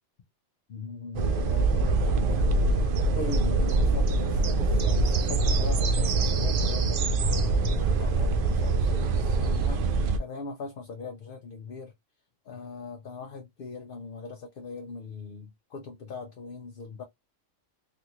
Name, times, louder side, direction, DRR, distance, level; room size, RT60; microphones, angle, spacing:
voice 1, 0.7-2.8 3.2-9.8 10.2-11.9 12.5-17.0, left 4 dB, 55° left, 0.7 m, -40 dB
sound 1, 1.1-10.2, right 3 dB, 65° right, 0.5 m, -24 dB
3.4 x 2.5 x 2.9 m
omnidirectional pair, 1.3 m